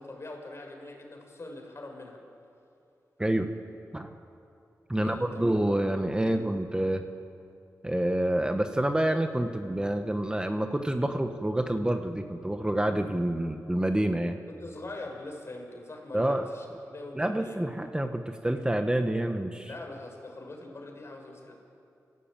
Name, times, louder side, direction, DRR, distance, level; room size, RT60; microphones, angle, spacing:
voice 1, 0.0-2.2 4.9-5.7 6.3-6.5 14.5-17.6 19.7-21.6, left 2 dB, 45° left, 2 dB, 5.6 m, -43 dB
voice 2, 4.9-7.0 7.8-14.4 16.1-16.5 17.1-19.7, right 1 dB, 15° right, 6 dB, 1.3 m, -28 dB
28.5 x 15.5 x 9.0 m, 2.7 s
cardioid pair, 70°, 6 cm